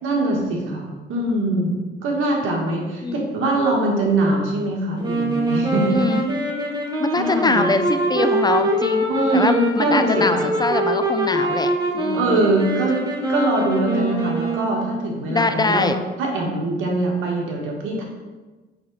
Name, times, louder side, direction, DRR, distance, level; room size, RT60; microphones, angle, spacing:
voice 1, 0.0-1.7 2.0-6.0 7.2-7.7 9.1-10.5 12.1-13.0 13.3-15.9 16.2-18.0, right 2 dB, 90° right, -1 dB, 1.8 m, -22 dB
sound 1, 5.0-15.0, right 1 dB, 20° right, 1.5 m, -24 dB
voice 2, 5.9-6.3 7.0-9.1 9.3-12.4 15.3-16.0, left 3 dB, 20° left, 9 dB, 0.5 m, -23 dB
6.7 x 5.6 x 4.2 m, 1.2 s
cardioid pair, 90°, 20 cm